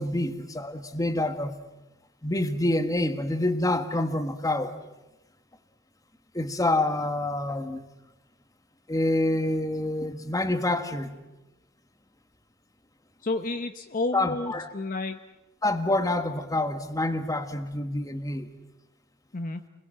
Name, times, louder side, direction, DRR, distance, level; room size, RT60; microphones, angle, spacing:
voice 1, 0.0-1.6 2.2-4.7 6.3-7.8 8.9-11.2 14.1-14.7 15.6-18.5, left 1 dB, 20° left, 8 dB, 1.7 m, -27 dB
voice 2, 13.2-15.2 19.3-19.6, left 2 dB, 45° left, 7 dB, 0.9 m, -31 dB
29.0 x 21.5 x 7.7 m, 1.0 s
head